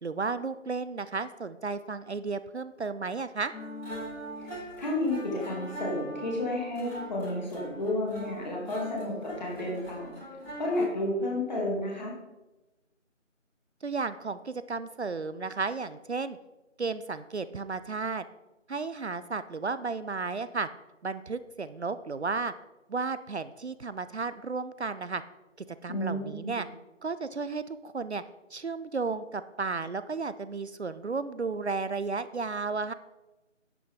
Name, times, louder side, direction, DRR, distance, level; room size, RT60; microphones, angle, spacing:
voice 1, 0.0-3.5 13.8-16.4 16.8-18.2 18.7-20.7 21.0-22.5 22.9-25.2 25.7-26.7 27.0-28.2 28.5-32.9, right 4 dB, 60° right, 13 dB, 0.6 m, -33 dB
sound 1, 3.5-10.8, equal, 10° left, 3.1 m, -41 dB
voice 2, 4.4-10.1 10.6-12.1 25.9-26.6, left 1 dB, 35° left, -2 dB, 3.1 m, -31 dB
12.0 x 8.5 x 3.9 m, 1.0 s
figure-of-eight pair, 165°, 38 cm